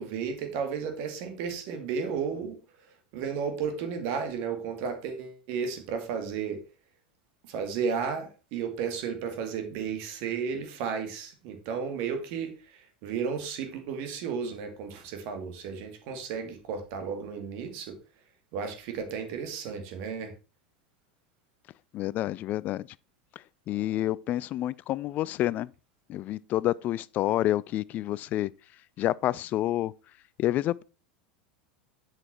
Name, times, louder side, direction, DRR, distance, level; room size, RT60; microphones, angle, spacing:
voice 1, 0.0-2.5 3.1-6.6 7.5-18.0 18.5-20.3, right 6 dB, 50° right, 2.2 m, -33 dB
voice 2, 21.9-22.8 23.7-25.7 26.1-28.5 29.0-29.9 30.4-30.8, left 14 dB, 35° left, 0.3 m, -28 dB
7.8 x 5.8 x 4.5 m
figure-of-eight pair, 85°, 5 cm